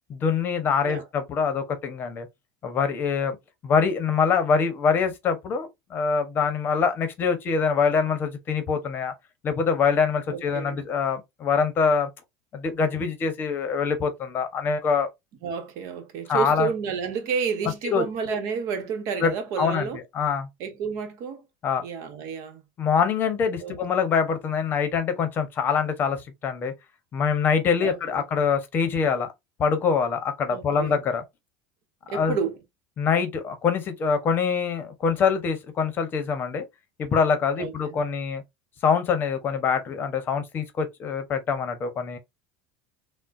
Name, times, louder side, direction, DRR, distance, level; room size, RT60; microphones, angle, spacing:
voice 1, 0.1-2.3 2.6-3.4 3.6-9.1 9.4-12.1 12.5-15.1 16.3-16.7 17.9-18.0 19.2-19.9 20.1-20.5 21.6-21.8 22.8-26.7 27.1-29.3 29.6-31.2 32.1-32.4 33.0-36.6 37.0-38.4 38.8-42.2, left 6 dB, 35° left, 0.8 m, -24 dB
voice 2, 10.3-10.8 15.4-20.0 20.6-21.4 21.8-22.6 23.6-23.8 27.8-28.2 30.5-31.0 32.1-32.6 37.6-38.0, right 6 dB, 60° right, 0.9 m, -30 dB
3.7 x 2.1 x 2.4 m
supercardioid pair, 120°, 6 cm